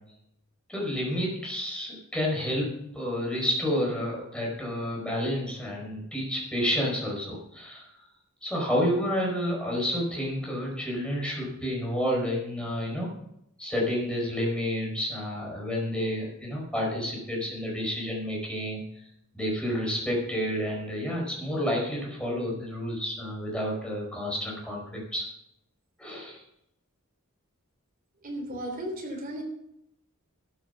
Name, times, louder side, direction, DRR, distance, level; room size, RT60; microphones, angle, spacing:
voice 1, 0.7-7.9 8.4-13.1 13.6-18.8 19.3-25.2 26.0-26.4, equal, 5° left, -2 dB, 5.0 m, -30 dB
voice 2, 28.2-29.4, right 1 dB, 40° right, 2 dB, 3.4 m, -35 dB
13.5 x 9.1 x 5.7 m, 0.80 s
head